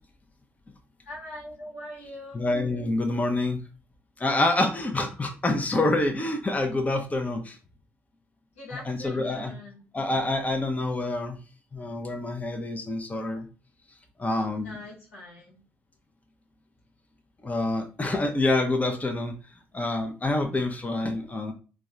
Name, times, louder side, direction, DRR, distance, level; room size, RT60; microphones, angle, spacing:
voice 1, 1.0-2.4 8.5-9.8 14.6-15.6, left 1 dB, 85° left, -5 dB, 1.0 m, -42 dB
voice 2, 2.3-3.6 4.2-7.6 8.7-9.5 9.9-11.4 11.7-13.5 14.2-14.8 17.4-19.4 19.7-21.5, left 2 dB, 20° left, 5 dB, 0.6 m, -27 dB
3.4 x 2.2 x 3.2 m, 0.35 s
figure-of-eight pair, 40°, 7 cm